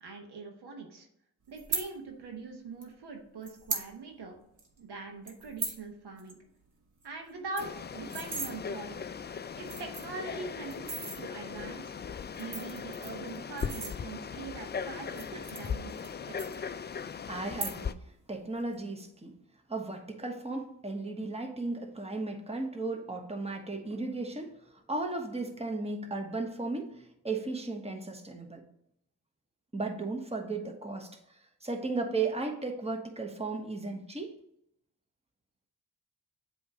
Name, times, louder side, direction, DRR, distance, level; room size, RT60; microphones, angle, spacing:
voice 1, 0.0-1.1 1.5-4.4 4.8-6.4 7.0-9.0 9.6-11.9 12.4-16.0 16.3-16.4, right 4 dB, 75° right, 3 dB, 1.2 m, -42 dB
sound 1, 1.6-1.9 2.8-2.9 3.4-3.9 4.2-4.3 4.6-4.8 5.3-5.8 6.2-6.3 6.6-6.7 7.0-7.1 7.4-8.5 9.2-9.3 9.6-10.2 10.7-11.2 12.2-14.4 15.0-16.1 16.4-17.0 17.4-18.0 18.3-18.7, right 4 dB, 50° right, 1.5 m, -37 dB
Frog, 7.6-17.9, left 6 dB, 25° left, 0.4 m, -39 dB
voice 2, 17.3-17.9 18.3-19.3 19.7-24.5 24.9-26.9 27.2-28.6 29.7-31.1 31.6-34.3, right 3 dB, 15° right, 3 dB, 1.2 m, -35 dB
7.7 x 3.1 x 4.9 m, 0.75 s
supercardioid pair, 40°, 40 cm